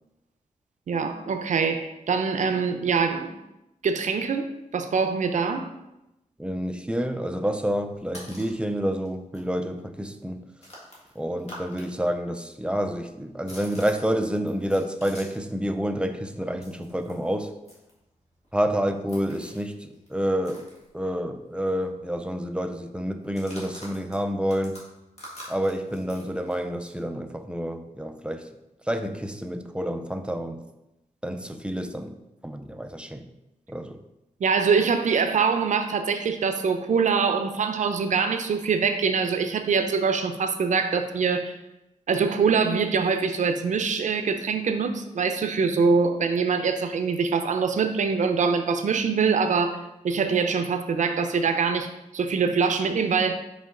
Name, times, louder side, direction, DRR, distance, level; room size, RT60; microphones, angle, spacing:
voice 1, 0.9-3.3 3.8-5.7 34.4-41.6 42.1-53.3, right 5 dB, 75° right, 7 dB, 0.5 m, -24 dB
voice 2, 6.4-10.4 11.2-17.5 18.5-20.7 20.9-24.8 25.5-28.5 28.9-30.6 31.2-32.2 32.4-33.3 33.7-34.0, equal, 10° right, 7 dB, 0.4 m, -28 dB
sound 1, 7.8-8.6 9.0-9.1 9.3-11.9 12.1-15.5 15.8-21.4 21.7-21.8 22.1-22.5 23.2-27.0, equal, 55° left, 1.9 m, -47 dB
5.4 x 5.3 x 3.7 m, 0.91 s
wide cardioid pair, 135°, 13 cm